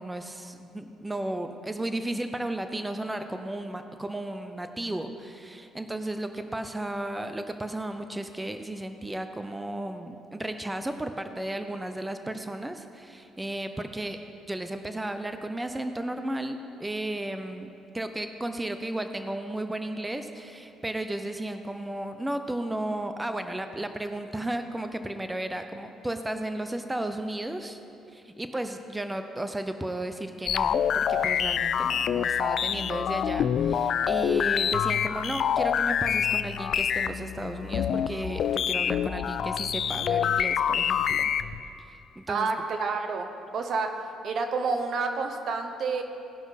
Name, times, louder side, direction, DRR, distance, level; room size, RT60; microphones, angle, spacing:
voice 1, 0.0-14.2 14.5-27.8 28.1-41.3 41.8-42.5, right 1 dB, 15° right, 7 dB, 0.6 m, -34 dB
sound 1, 30.5-41.6, left 8 dB, 65° left, 0.3 m, -26 dB
voice 2, 42.3-44.0 44.2-46.0, right 4 dB, 60° right, 6 dB, 0.9 m, -29 dB
18.0 x 6.0 x 4.1 m, 2.8 s
supercardioid pair, 70°, 0 cm